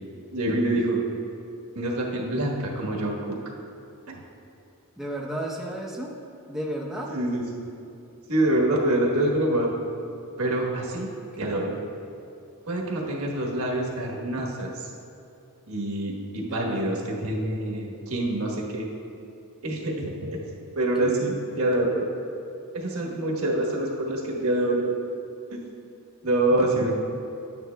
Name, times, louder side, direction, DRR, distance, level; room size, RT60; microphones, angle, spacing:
voice 1, 0.3-1.0 1.7-3.4 4.1-4.2 7.1-7.6 8.3-9.7 10.4-11.1 11.4-11.8 12.7-14.9 15.7-18.9 19.6-20.4 20.7-22.1 22.7-24.9 25.5-25.6 26.2-26.9, right 1 dB, 70° right, -1 dB, 1.3 m, -26 dB
voice 2, 5.0-6.1 6.5-7.1 11.1-11.6 16.4-16.9 21.0-21.2 26.5-26.7, right 1 dB, ahead, -4 dB, 0.7 m, -34 dB
11.0 x 9.2 x 2.2 m, 2.7 s
head